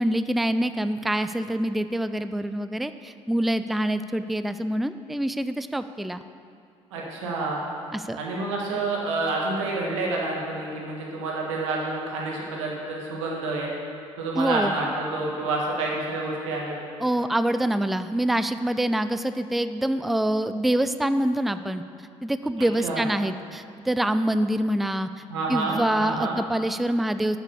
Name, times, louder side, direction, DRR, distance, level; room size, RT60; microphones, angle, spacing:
voice 1, 0.0-6.2 7.9-8.2 14.4-14.8 17.0-21.8 22.2-25.1 25.5-27.4, right 1 dB, ahead, 11 dB, 0.3 m, -25 dB
voice 2, 6.9-7.6 8.2-13.7 14.2-16.7 22.8-23.0 25.3-26.3, right 3 dB, 75° right, -2 dB, 1.5 m, -28 dB
6.9 x 6.8 x 6.7 m, 2.4 s
hypercardioid pair, 60°, 16 cm